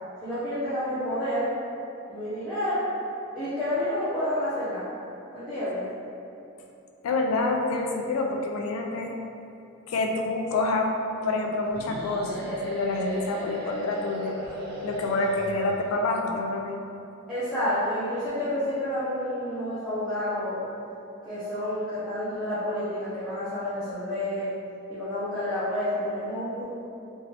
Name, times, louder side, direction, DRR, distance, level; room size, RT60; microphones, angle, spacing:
voice 1, 0.2-1.5 2.1-2.9 3.3-4.9 5.3-5.8 17.3-20.6 21.2-24.5 24.9-26.6, left 1 dB, ahead, -16 dB, 0.7 m, -29 dB
voice 2, 7.0-9.2 9.9-10.9 11.2-14.4 14.8-16.8, left 2 dB, 90° left, 2 dB, 0.3 m, -27 dB
sound 1, 11.7-15.9, equal, 45° right, 0.6 m, -35 dB
2.9 x 2.6 x 3.1 m, 2.7 s
head